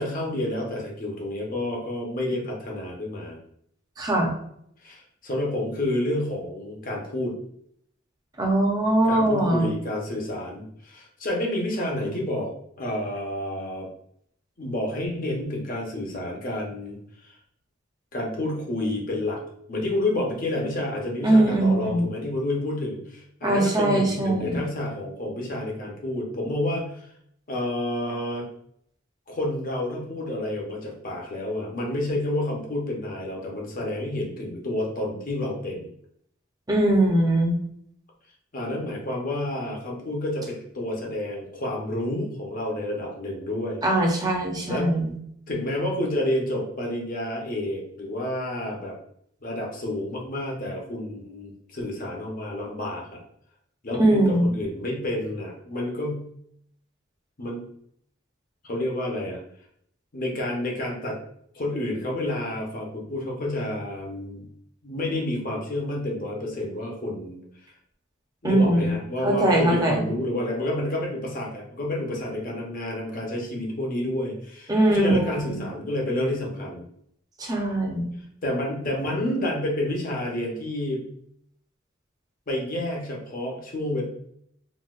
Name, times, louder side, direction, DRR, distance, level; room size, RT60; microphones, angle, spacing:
voice 1, 0.0-3.4 4.8-7.4 9.0-12.5 12.8-13.9 14.6-17.4 18.1-19.4 19.7-27.1 27.5-28.4 29.3-35.9 38.5-43.8 44.7-45.0 45.5-48.9 49.4-53.2 53.8-56.3 57.4-57.6 58.6-59.4 60.1-61.2 61.5-64.5 64.8-67.4 68.4-76.8 78.4-81.0 82.5-84.0, left 1 dB, 45° left, -1 dB, 0.8 m, -29 dB
voice 2, 4.0-4.3 8.4-9.7 21.2-22.1 23.4-24.7 36.7-37.5 43.8-45.1 54.0-54.5 68.4-69.0 69.2-70.0 74.7-75.6 77.4-78.1, right 1 dB, 20° right, 0 dB, 0.6 m, -21 dB
3.9 x 2.2 x 2.4 m, 0.69 s
head